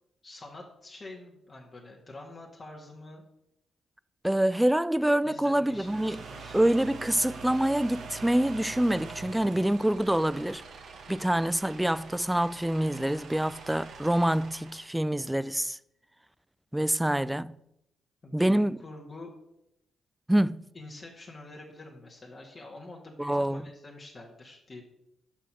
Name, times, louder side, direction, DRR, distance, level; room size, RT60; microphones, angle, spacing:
voice 1, 0.2-3.2 5.2-6.6 18.2-19.3 20.7-24.8, left 2 dB, 40° left, 1.6 m, -46 dB
voice 2, 4.2-6.2 6.5-10.6 11.1-15.8 16.7-17.5 18.3-18.8 20.3-20.6 23.2-23.6, right 1 dB, 10° right, 0.3 m, -26 dB
sound 1, 5.6-14.9, right 4 dB, 65° right, 1.0 m, -44 dB
6.1 x 5.6 x 6.1 m
hypercardioid pair, 45°, 0 cm